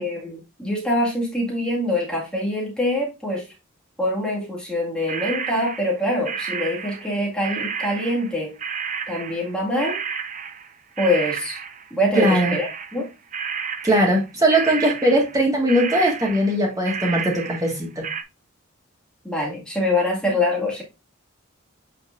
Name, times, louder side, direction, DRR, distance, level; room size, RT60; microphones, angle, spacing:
voice 1, 0.0-3.5 4.0-8.5 9.1-10.0 11.0-11.6 11.9-13.1 19.2-20.8, left 1 dB, 5° left, -4 dB, 2.0 m, -24 dB
sound 1, 5.1-11.9 12.1-14.2 14.5-15.4 15.7-18.2, right 6 dB, 35° right, 0.6 m, -31 dB
voice 2, 12.2-12.6 13.8-18.1, right 1 dB, 15° right, 0 dB, 1.8 m, -20 dB
8.5 x 4.4 x 2.6 m, 0.27 s
head